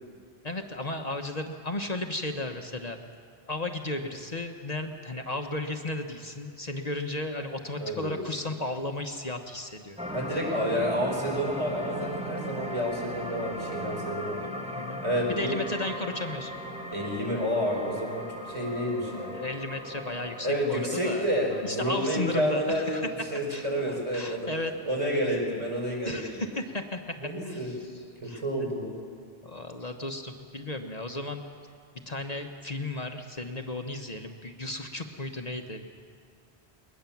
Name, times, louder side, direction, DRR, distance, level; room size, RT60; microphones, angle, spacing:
voice 1, 0.4-3.0 3.5-10.0 14.8-15.0 15.3-16.5 19.3-23.1 23.5-24.7 26.0-27.2 27.4-27.9 28.2-28.7 29.4-31.5 32.1-35.9, left 2 dB, 40° left, 4 dB, 1.1 m, -34 dB
voice 2, 7.8-8.2 10.1-14.4 15.0-15.5 16.9-19.3 20.4-23.0 23.3-24.5 24.8-26.4 27.2-27.7 28.2-28.9, equal, 30° right, -1 dB, 4.8 m, -29 dB
sound 1, 10.0-26.4 26.9-27.0, equal, 5° right, 1.5 m, -39 dB
22.0 x 20.0 x 7.1 m, 2.2 s
omnidirectional pair, 1.1 m